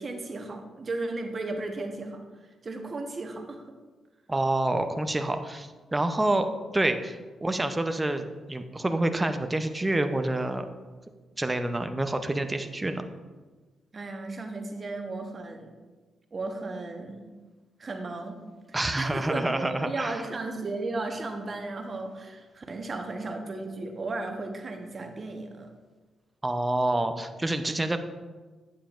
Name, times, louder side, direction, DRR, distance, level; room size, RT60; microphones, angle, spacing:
voice 1, 0.0-2.2 2.6-3.7 6.2-6.5 13.9-15.7 16.3-17.2 17.8-18.4 18.7-25.7, right 2 dB, 45° right, 4 dB, 1.1 m, -35 dB
voice 2, 4.3-6.5 6.7-10.7 11.4-13.0 18.7-20.2 26.4-28.0, right 1 dB, 20° right, 7 dB, 0.6 m, -27 dB
8.7 x 7.4 x 2.5 m, 1.3 s
supercardioid pair, 55°, 0 cm